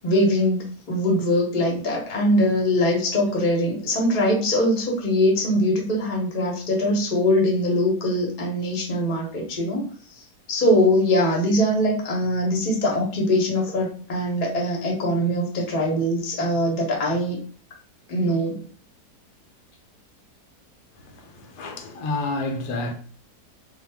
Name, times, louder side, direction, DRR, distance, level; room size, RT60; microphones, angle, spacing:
voice 1, 0.0-9.8 10.5-17.4 18.1-18.6, left 1 dB, 40° left, 0.7 m, -22 dB
voice 2, 21.0-22.9, left 2 dB, 80° left, 1.1 m, -30 dB
2.6 x 2.1 x 3.3 m
omnidirectional pair, 1.7 m